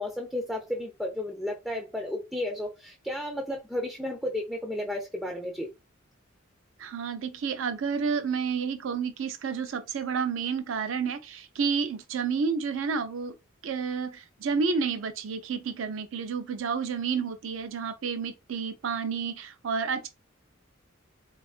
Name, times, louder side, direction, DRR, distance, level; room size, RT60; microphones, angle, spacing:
voice 1, 0.0-5.7, left 1 dB, ahead, 0.4 m, -33 dB
voice 2, 6.8-13.3 13.6-20.1, right 5 dB, 70° right, 0.4 m, -30 dB
3.5 x 2.3 x 2.4 m
head